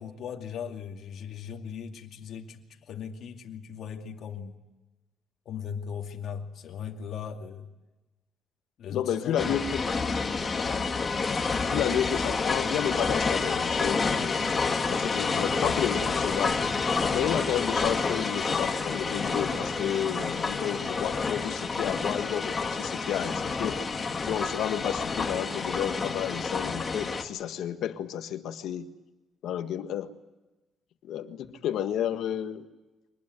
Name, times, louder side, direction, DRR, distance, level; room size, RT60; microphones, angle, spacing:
voice 1, 0.0-4.6 5.5-7.7 8.8-9.6, left 7 dB, 65° left, 2 dB, 2.4 m, -38 dB
voice 2, 8.9-9.8 11.6-14.5 14.9-16.6 17.1-23.8 24.2-28.9 29.4-30.1 31.0-32.6, left 10 dB, 80° left, 8 dB, 1.7 m, -31 dB
sound 1, 9.4-27.2, left 4 dB, 30° left, 2.2 m, -29 dB
24.5 x 20.0 x 9.3 m, 1.1 s
cardioid pair, 120°, 0 cm